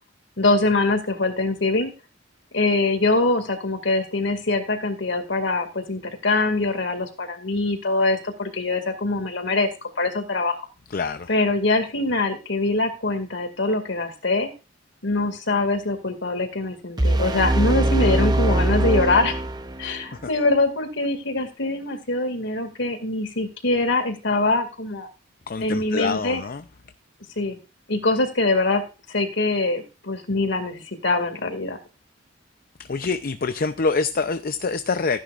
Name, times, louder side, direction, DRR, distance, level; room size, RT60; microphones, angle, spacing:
voice 1, 0.4-1.9 2.5-9.7 10.0-10.6 11.3-14.5 15.0-19.4 19.8-25.1 25.6-26.4 27.4-27.6 27.9-28.8 29.1-31.8, left 2 dB, 65° left, 2.3 m, -23 dB
voice 2, 10.9-11.3 20.2-20.3 25.5-26.6 32.9-35.2, left 4 dB, 50° left, 0.6 m, -25 dB
sound 1, 17.0-20.0, right 1 dB, 20° right, 0.8 m, -22 dB
15.0 x 10.5 x 2.5 m
head